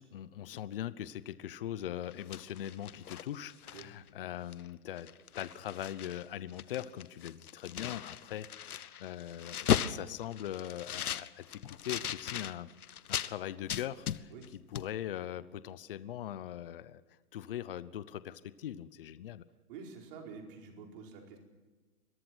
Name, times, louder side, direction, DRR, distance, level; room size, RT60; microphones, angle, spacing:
voice 1, 0.0-5.1 5.3-12.7 13.1-17.0 17.3-19.4, left 11 dB, 40° left, 16 dB, 0.9 m, -41 dB
sound 1, 2.0-4.1 4.5-4.7 5.0-6.2 6.5-13.3 13.7-14.5 14.8-14.9, left 9 dB, 75° left, 1.2 m, -37 dB
voice 2, 19.7-21.4, right 5 dB, 35° right, 1 dB, 4.9 m, -48 dB
27.0 x 22.5 x 6.3 m, 1.3 s
hypercardioid pair, 160°, 45 cm